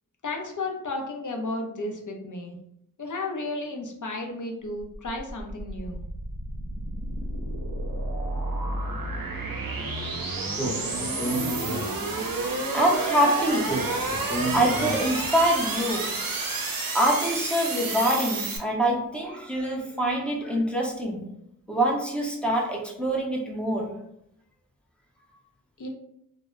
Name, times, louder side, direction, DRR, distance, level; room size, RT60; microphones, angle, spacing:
voice 1, 0.2-2.6 3.0-6.1 25.8-25.9, left 2 dB, 55° left, 2 dB, 0.5 m, -33 dB
sound 1, 4.8-18.6, right 2 dB, 65° right, 0.5 m, -30 dB
Speech, 10.5-12.4 13.6-15.4, right 1 dB, 25° left, 0.9 m, -31 dB
voice 2, 12.7-13.7 14.3-16.1 16.9-21.3 21.7-23.9, right 1 dB, 5° left, -1 dB, 0.6 m, -25 dB
2.1 x 2.0 x 3.5 m, 0.77 s
wide cardioid pair, 55°, 36 cm